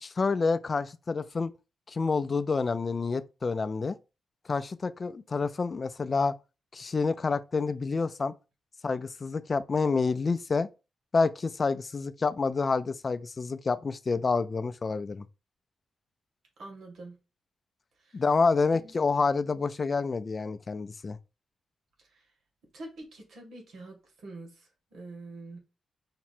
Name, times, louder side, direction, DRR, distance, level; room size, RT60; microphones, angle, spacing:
voice 1, 0.0-1.5 1.9-4.0 4.5-6.3 6.7-8.3 8.8-10.7 11.1-15.3 18.1-21.2, left 4 dB, 30° left, 0.4 m, -28 dB
voice 2, 16.6-17.2 18.0-18.2 18.7-18.9 22.1-22.2 22.7-25.6, right 2 dB, 70° right, 1.9 m, -45 dB
5.8 x 2.1 x 4.3 m
wide cardioid pair, 155°, 0 cm